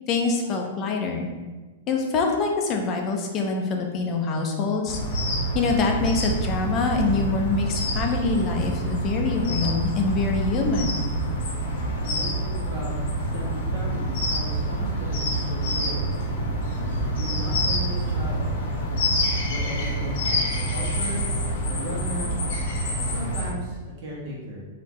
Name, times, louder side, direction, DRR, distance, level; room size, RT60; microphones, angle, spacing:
voice 1, 0.1-1.3 1.9-5.0 5.5-11.0, left 4 dB, 25° left, 2 dB, 0.5 m, -25 dB
sound 1, 4.9-23.5, right 1 dB, 55° left, 1.0 m, -27 dB
voice 2, 11.9-16.0 17.2-18.5 19.4-21.2 21.7-22.4 23.0-24.6, right 1 dB, 35° right, -4 dB, 1.3 m, -36 dB
4.1 x 2.7 x 4.2 m, 1.3 s
supercardioid pair, 165°, 0 cm